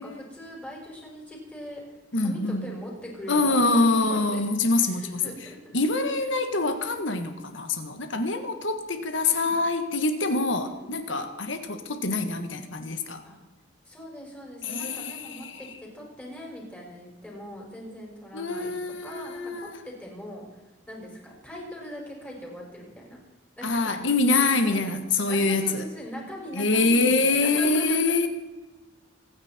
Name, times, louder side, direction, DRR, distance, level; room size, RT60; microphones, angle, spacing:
voice 1, 0.0-1.8 2.2-4.4 4.8-5.8 9.3-9.5 10.6-11.0 13.2-13.3 13.9-15.7 15.9-20.6 20.9-23.2 23.6-24.0 24.4-24.9 25.3-28.3, equal, 10° left, 5.6 m, -41 dB
voice 2, 2.1-2.7 3.3-5.2 5.7-13.2 14.6-15.6 18.3-19.8 23.6-25.8 26.5-28.3, left 3 dB, 70° left, 1.7 m, -25 dB
27.0 x 9.9 x 4.5 m
head